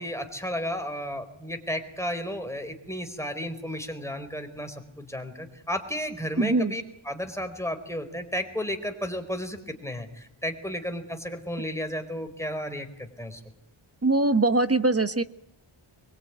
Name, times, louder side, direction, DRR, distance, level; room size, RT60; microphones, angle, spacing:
voice 1, 0.0-13.4, equal, 5° left, 5 dB, 4.3 m, -33 dB
voice 2, 6.4-6.7 14.0-15.2, right 2 dB, 30° right, 11 dB, 1.3 m, -22 dB
24.0 x 22.5 x 9.4 m, 0.75 s
wide cardioid pair, 75°, 49 cm